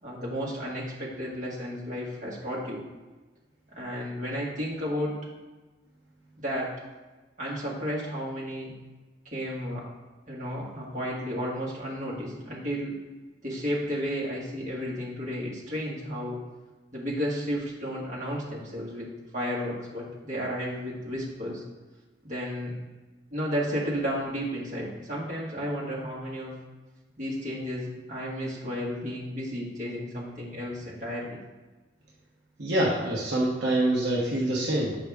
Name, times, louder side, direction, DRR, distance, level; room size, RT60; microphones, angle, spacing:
voice 1, 0.0-2.8 3.7-5.2 6.4-6.7 7.4-8.7 9.3-9.9 10.3-13.0 13.4-16.4 16.9-21.6 22.2-22.8 23.3-26.5 27.2-31.4, equal, 45° right, -5 dB, 1.8 m, -33 dB
voice 2, 32.6-35.0, right 1 dB, 70° right, -5 dB, 1.2 m, -25 dB
8.2 x 5.1 x 3.6 m, 1.2 s
head